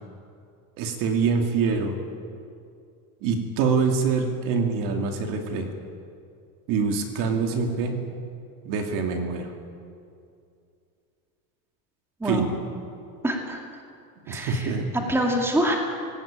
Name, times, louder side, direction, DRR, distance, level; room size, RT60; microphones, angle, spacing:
voice 1, 0.8-1.9 3.2-5.7 6.7-8.0 8.6-9.5 12.2-12.6 14.3-14.9, right 5 dB, 45° right, 4 dB, 2.6 m, -25 dB
voice 2, 13.2-13.6 14.3-14.7 15.1-15.8, equal, 5° right, 1 dB, 2.4 m, -25 dB
19.5 x 18.0 x 8.9 m, 2.4 s
supercardioid pair, 155°, 44 cm